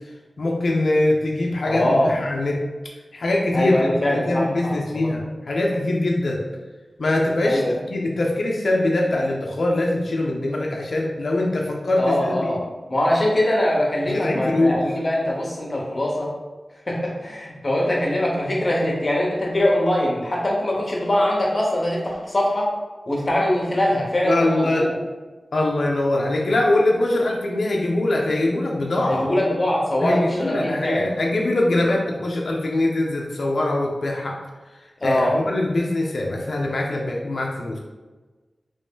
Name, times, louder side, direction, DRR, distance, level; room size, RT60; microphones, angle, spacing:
voice 1, 0.4-2.6 3.1-6.4 7.0-12.5 14.1-14.8 24.2-24.9 25.5-29.3 30.0-34.4 35.0-37.8, left 2 dB, 75° left, -1 dB, 0.4 m, -22 dB
voice 2, 1.6-2.1 3.5-5.1 7.4-7.8 12.0-12.6 12.9-16.3 16.9-22.7 23.1-24.9 29.1-31.0 35.0-35.3, left 1 dB, 40° left, -2 dB, 0.8 m, -22 dB
3.0 x 2.7 x 3.5 m, 1.3 s
wide cardioid pair, 95°, 0 cm